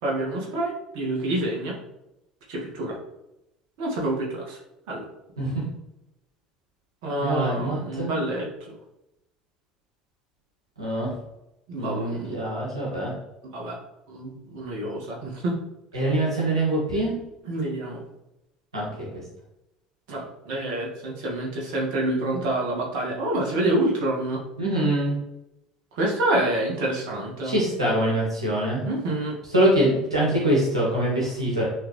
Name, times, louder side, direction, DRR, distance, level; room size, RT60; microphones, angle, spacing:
voice 1, 0.0-1.8 2.5-3.0 3.8-4.6 4.9-5.0 7.0-8.8 11.7-12.4 13.5-13.8 14.1-15.6 17.0-17.1 17.4-18.0 20.1-24.4 25.9-27.6 28.8-29.4, right 1 dB, 60° right, -3 dB, 2.0 m, -27 dB
voice 2, 7.2-8.1 10.8-11.1 11.8-13.1 15.9-17.1 18.7-19.2 24.6-25.2 27.4-28.8 29.5-31.6, right 1 dB, 85° right, -5 dB, 1.9 m, -24 dB
10.0 x 3.6 x 3.2 m, 0.89 s
figure-of-eight pair, 65°, 3 cm